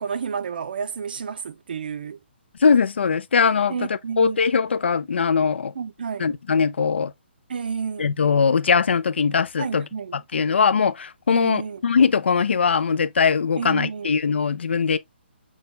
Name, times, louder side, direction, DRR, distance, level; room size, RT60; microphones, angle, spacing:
voice 1, 0.0-2.2 3.7-4.5 5.7-6.3 7.5-8.1 9.6-10.2 11.3-11.8 13.6-14.1, right 6 dB, 50° right, 0.6 m, -30 dB
voice 2, 2.6-3.7 4.2-5.7 6.2-7.1 8.0-9.8 10.1-15.0, left 5 dB, 70° left, 0.5 m, -21 dB
6.3 x 2.3 x 3.1 m
hypercardioid pair, 170°, 6 cm